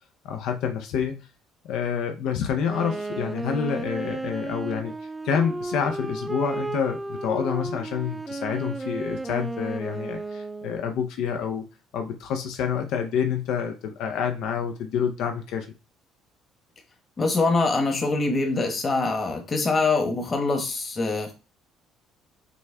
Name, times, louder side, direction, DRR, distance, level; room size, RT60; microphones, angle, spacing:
voice 1, 0.2-1.3 1.6-4.9 5.2-11.6 11.9-15.7, left 7 dB, 75° left, 0.5 m, -28 dB
Wind instrument woodwind instrument, 2.6-11.0, right 2 dB, 10° right, 0.3 m, -33 dB
voice 2, 17.2-21.3, left 3 dB, 30° left, 1.1 m, -24 dB
6.0 x 2.2 x 3.3 m
cardioid pair, 130°, 0 cm